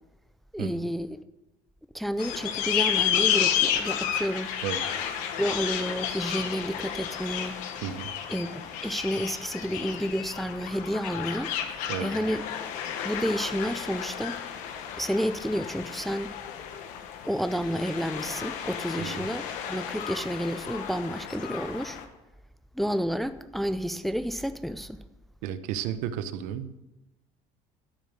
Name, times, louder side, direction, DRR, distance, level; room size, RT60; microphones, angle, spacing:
voice 1, 0.5-1.2 1.9-4.5 5.4-7.6 8.3-11.5 12.0-12.4 13.0-14.4 15.0-16.4 17.3-22.0 22.7-25.0, equal, ahead, 0.4 m, -30 dB
sound 1, 2.2-22.0, left 9 dB, 75° left, 1.4 m, -32 dB
voice 2, 7.8-8.1 11.9-12.1 19.0-19.2 25.4-26.8, right 10 dB, 80° right, 0.9 m, -33 dB
12.5 x 7.1 x 7.4 m
cardioid pair, 140°, 13 cm